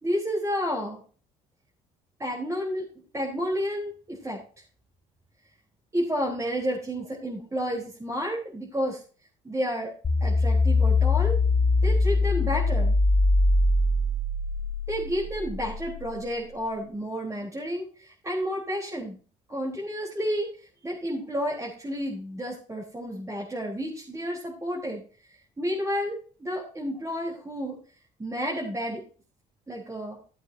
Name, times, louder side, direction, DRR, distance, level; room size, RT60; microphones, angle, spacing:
voice 1, 0.0-1.0 2.2-2.8 3.1-4.4 5.9-9.0 9.4-9.9 10.2-11.4 11.8-12.9 14.9-19.2 19.5-20.5 20.8-25.0 25.6-27.8 28.2-29.0 29.7-30.2, equal, 20° right, -4 dB, 3.7 m, -31 dB
sound 1, 10.0-16.3, left 2 dB, 30° left, 3.0 m, -23 dB
14.5 x 8.0 x 2.7 m, 0.39 s
supercardioid pair, 80°, 16 cm